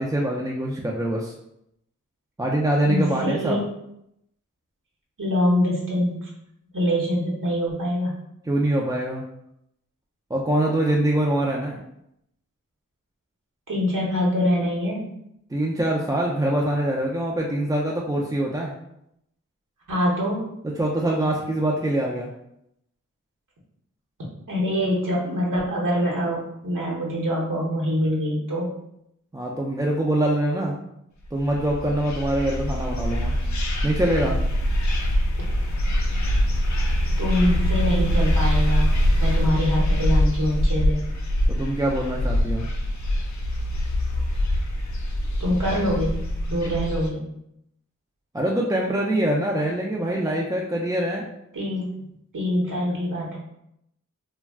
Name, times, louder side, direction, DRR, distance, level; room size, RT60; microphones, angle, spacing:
voice 1, 0.0-1.3 2.4-3.6 8.4-9.2 10.3-11.8 15.5-18.7 20.8-22.3 29.3-30.7 31.3-33.3 33.8-34.4 41.5-42.7 48.3-51.2, right 1 dB, 10° right, -2 dB, 0.3 m, -24 dB
voice 2, 2.8-3.6 5.2-6.3 6.7-8.1 13.7-15.1 19.9-20.4 24.5-28.7 37.2-41.0 45.4-46.1 46.5-47.2 51.5-51.9 52.3-53.4, equal, 75° right, -5 dB, 0.9 m, -24 dB
sound 1, 31.4-47.1, equal, 60° left, 0.5 m, -23 dB
2.3 x 2.2 x 3.4 m, 0.79 s
cardioid pair, 45°, 32 cm